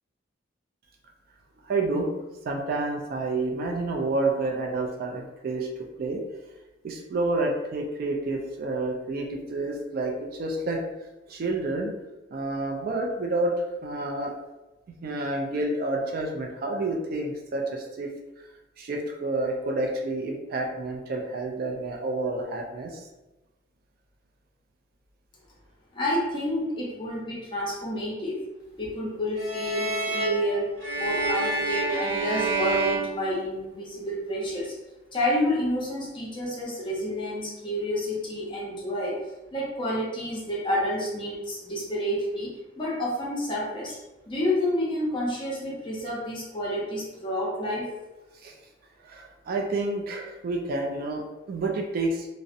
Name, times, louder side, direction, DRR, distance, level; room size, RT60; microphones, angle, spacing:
voice 1, 1.6-2.1 2.4-5.7 6.0-6.2 6.8-10.8 11.3-11.9 12.3-14.3 15.0-18.1 18.4-18.5 18.8-23.0 48.4-48.5 49.0-52.3, right 2 dB, 50° right, 1 dB, 0.3 m, -29 dB
voice 2, 25.9-28.4 28.8-30.7 31.0-34.7 35.1-39.2 39.5-44.0 44.3-47.9, equal, 25° left, -5 dB, 0.6 m, -29 dB
sound 1, 29.4-34.0, right 3 dB, 80° right, 0.9 m, -29 dB
2.6 x 2.0 x 2.5 m, 1.0 s
head